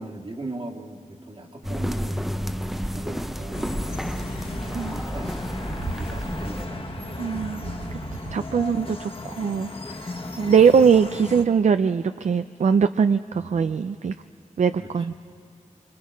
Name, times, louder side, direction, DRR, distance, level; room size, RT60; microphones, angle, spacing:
voice 1, 0.0-2.3 2.9-4.2 4.6-5.7 6.0-6.9 8.5-8.7 10.5-10.9 13.3-13.7 14.8-15.1, right 2 dB, 45° right, 1 dB, 1.9 m, -39 dB
sound 1, 1.6-6.7, equal, ahead, 0.7 m, -31 dB
sound 2, 1.6-8.4, right 3 dB, 85° right, 1.0 m, -39 dB
sound 3, 3.5-11.4, left 2 dB, 45° left, 1.5 m, -36 dB
voice 2, 7.2-7.6 8.3-14.1 14.6-15.1, right 6 dB, 65° right, 10 dB, 0.4 m, -21 dB
26.5 x 24.5 x 5.2 m, 2.5 s
wide cardioid pair, 90°, 13 cm